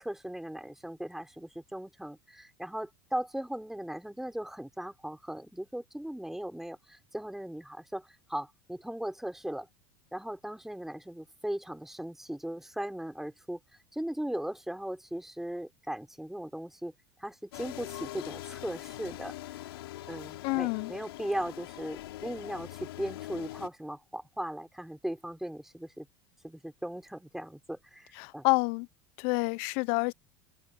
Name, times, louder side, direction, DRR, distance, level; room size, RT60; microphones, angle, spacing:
voice 1, 0.0-9.7 10.1-13.6 13.9-16.9 17.2-19.3 20.1-26.1 26.4-28.5, right 1 dB, 5° right, 5.7 m, -38 dB
sound 1, 17.5-23.7, left 15 dB, 80° left, 5.5 m, -43 dB
voice 2, 20.4-20.9 28.1-28.9 29.2-30.1, left 28 dB, 65° left, 0.9 m, -28 dB
hypercardioid pair, 90°, 13 cm